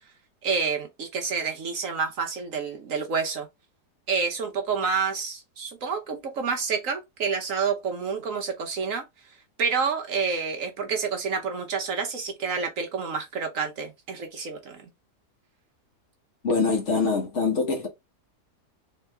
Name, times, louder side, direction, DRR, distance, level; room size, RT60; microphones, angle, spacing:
voice 1, 0.4-3.5 4.1-9.0 9.6-14.9, right 5 dB, 60° right, 1.1 m, -28 dB
voice 2, 16.4-17.9, left 4 dB, 50° left, 1.2 m, -24 dB
3.9 x 3.0 x 3.4 m
omnidirectional pair, 1.7 m